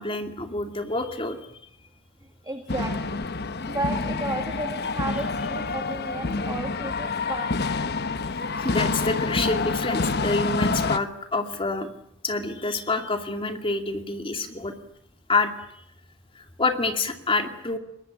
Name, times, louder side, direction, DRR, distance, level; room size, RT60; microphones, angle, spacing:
voice 1, 0.0-1.4 8.6-11.9 12.2-14.7 15.3-15.8 16.4-17.8, left 3 dB, 25° left, 6 dB, 2.5 m, -27 dB
voice 2, 2.4-3.2 3.7-7.5, right 2 dB, 20° right, 4 dB, 1.8 m, -33 dB
sound 1, 2.7-11.0, left 3 dB, 50° left, 1.1 m, -27 dB
22.5 x 20.0 x 9.9 m, 0.76 s
head